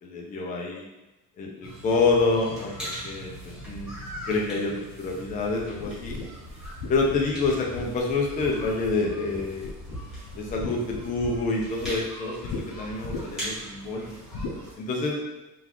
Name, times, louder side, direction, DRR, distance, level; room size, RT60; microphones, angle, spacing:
voice 1, 0.0-0.9 1.4-3.3 3.7-3.9 4.3-6.2 6.9-9.7 10.4-14.1 14.8-15.2, left 3 dB, 20° left, -1 dB, 0.4 m, -27 dB
sound 1, 1.6-14.7, equal, ahead, 1.4 m, -40 dB
sound 2, 5.8-9.0 9.3-9.9 10.2-11.9 12.4-12.6 13.0-13.5 14.3-14.6, left 3 dB, 60° left, 0.7 m, -36 dB
3.7 x 2.4 x 2.9 m, 1.0 s
cardioid pair, 145°, 42 cm